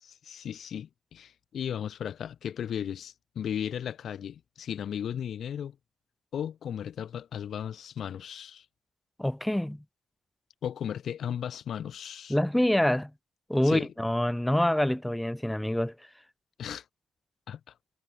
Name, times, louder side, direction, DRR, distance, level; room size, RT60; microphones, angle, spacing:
voice 1, 0.0-5.8 6.3-8.6 10.6-12.3 13.6-13.9 16.6-16.8 17.5-17.6, left 9 dB, 55° left, 1.1 m, -35 dB
voice 2, 9.2-9.8 12.3-13.1 13.5-15.9, left 1 dB, 5° left, 1.0 m, -26 dB
cardioid pair, 130°, 0 cm